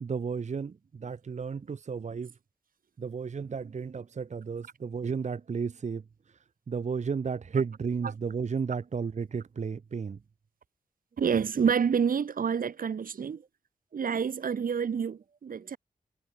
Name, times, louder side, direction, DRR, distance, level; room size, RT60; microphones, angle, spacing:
voice 1, 0.0-2.3 3.0-6.0 6.7-10.2 15.6-15.7, right 5 dB, 50° right, 0.9 m, -33 dB
voice 2, 11.2-13.4 13.9-15.8, right 7 dB, 70° right, 1.4 m, -28 dB
cardioid pair, 65°, 15 cm